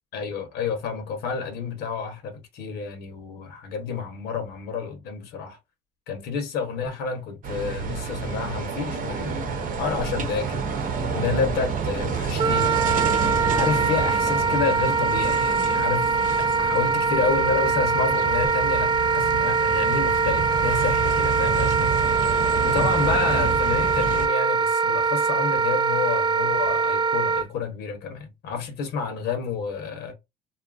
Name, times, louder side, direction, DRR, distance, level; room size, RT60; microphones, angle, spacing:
voice 1, 0.1-5.6 6.1-10.8 11.1-12.8 13.5-16.1 16.4-21.9 22.6-30.1, left 5 dB, 75° left, 0.9 m, -29 dB
sound 1, 7.4-24.3, right 5 dB, 55° right, 0.8 m, -29 dB
Wind instrument woodwind instrument, 12.4-27.5, right 5 dB, 30° right, 0.3 m, -23 dB
2.7 x 2.4 x 2.4 m
cardioid pair, 110°, 17 cm